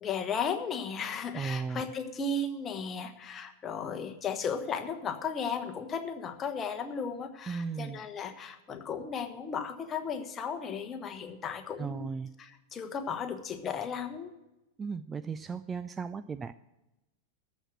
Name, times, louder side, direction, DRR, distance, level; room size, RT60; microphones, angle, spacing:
voice 1, 0.0-12.1 12.4-14.3, left 5 dB, 25° left, 6 dB, 1.2 m, -35 dB
voice 2, 1.3-1.8 7.5-8.0 11.8-12.3 14.8-16.5, right 5 dB, 20° right, 13 dB, 0.3 m, -36 dB
14.0 x 6.2 x 7.5 m, 0.97 s
figure-of-eight pair, 90°, 0 cm